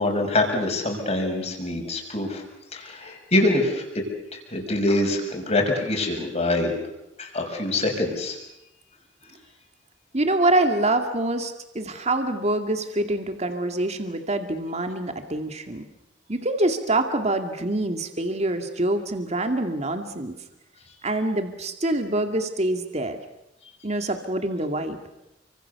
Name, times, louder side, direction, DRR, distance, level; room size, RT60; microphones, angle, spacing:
voice 1, 0.0-2.4 2.7-4.0 4.3-6.7 7.2-8.4, left 2 dB, 35° left, 2 dB, 6.3 m, -24 dB
voice 2, 10.1-15.8 16.3-20.3 21.0-23.2 23.8-25.0, right 2 dB, 35° right, 6 dB, 2.3 m, -25 dB
30.0 x 25.0 x 7.0 m, 0.87 s
head